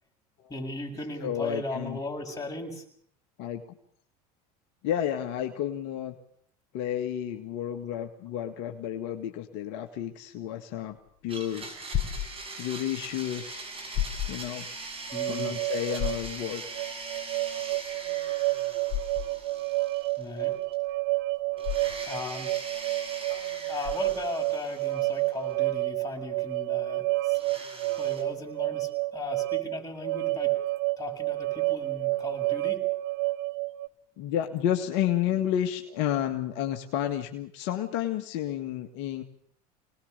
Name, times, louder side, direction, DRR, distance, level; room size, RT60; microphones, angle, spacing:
voice 1, 0.5-2.8 15.1-15.6 20.2-20.5 22.1-22.5 23.7-27.4 27.9-30.5 31.0-32.8, left 2 dB, 15° left, 2 dB, 7.3 m, -37 dB
voice 2, 1.2-2.0 3.4-3.6 4.8-6.2 6.7-11.0 11.2-11.7 12.6-13.7 14.3-14.7 15.3-16.6 21.4-21.7 23.3-23.6 24.9-25.1 34.2-39.2, left 10 dB, 65° left, 5 dB, 1.9 m, -31 dB
sound 1, 11.0-24.4, left 11 dB, 45° left, 4.1 m, -36 dB
Domestic sounds home sounds, 11.3-20.5 20.7-20.8 21.6-25.5 27.3-28.2, right 3 dB, 30° right, 6.8 m, -42 dB
sound 2, 15.1-33.9, right 20 dB, 60° right, 0.9 m, -30 dB
26.5 x 19.5 x 6.8 m, 0.64 s
hypercardioid pair, 90°, 20 cm